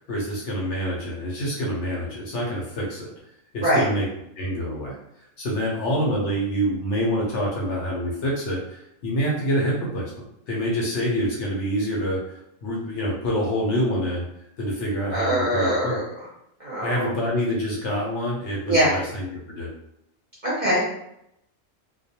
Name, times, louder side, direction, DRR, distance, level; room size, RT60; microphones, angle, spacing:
voice 1, 0.0-3.1 3.5-4.1 4.4-5.0 5.4-14.2 14.6-16.0 16.8-19.7, equal, 65° left, -3 dB, 0.8 m, -26 dB
voice 2, 15.1-16.0 16.6-17.1 18.7-18.9 20.4-20.9, right 1 dB, 45° right, -7 dB, 0.7 m, -22 dB
2.3 x 2.2 x 2.7 m, 0.79 s
omnidirectional pair, 1.5 m